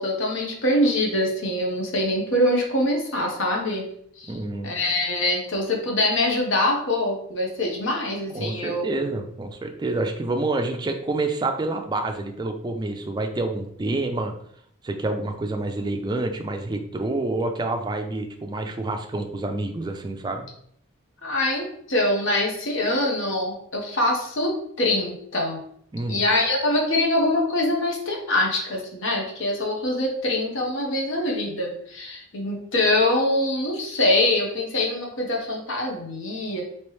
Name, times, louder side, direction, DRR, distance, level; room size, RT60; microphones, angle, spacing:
voice 1, 0.0-3.8 4.2-4.3 4.6-9.1 21.2-25.6 26.1-36.6, left 1 dB, 65° left, 0 dB, 0.9 m, -24 dB
voice 2, 4.3-4.7 8.3-14.3 14.8-20.5 25.9-26.2, right 2 dB, 20° right, 4 dB, 0.3 m, -28 dB
3.1 x 2.9 x 3.1 m, 0.68 s
head